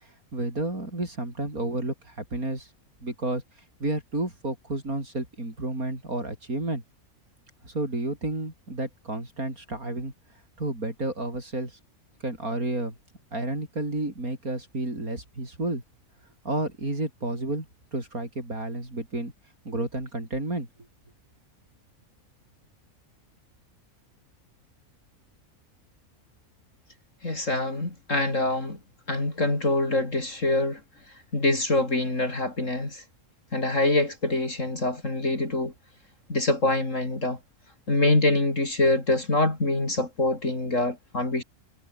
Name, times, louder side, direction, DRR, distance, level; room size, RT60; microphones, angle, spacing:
voice 1, 0.3-2.7 3.0-3.4 3.8-6.8 7.6-10.1 10.6-11.7 12.2-13.0 13.3-15.8 16.4-17.7 17.9-19.3 19.7-20.7, right 2 dB, 70° right, 7.3 m, -31 dB
voice 2, 27.2-28.8 29.1-30.8 31.3-33.0 33.5-35.7 36.3-37.4 37.9-41.4, left 2 dB, 55° left, 5.2 m, -25 dB
omnidirectional pair, 1.5 m